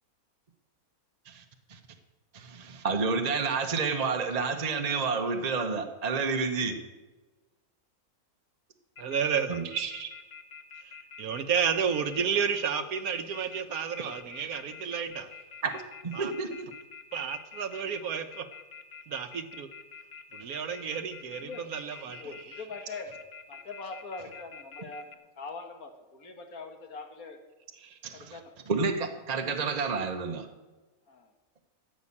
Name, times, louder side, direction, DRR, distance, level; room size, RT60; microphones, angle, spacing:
voice 1, 2.3-6.8 9.5-10.1 15.6-16.7 22.0-22.6 27.8-28.4 28.7-30.5, right 4 dB, 30° right, 0.9 m, -30 dB
sound 1, 9.0-25.2, left 6 dB, 45° left, 1.1 m, -46 dB
voice 2, 9.0-9.6 10.8-15.3 16.1-16.3 17.1-18.5 19.1-19.7 20.3-22.3, right 7 dB, 75° right, 1.4 m, -31 dB
voice 3, 22.2-23.1 23.5-25.1 25.4-27.4 28.1-28.5 31.1-31.3, left 4 dB, 70° left, 2.0 m, -42 dB
14.0 x 6.3 x 8.6 m
omnidirectional pair, 1.6 m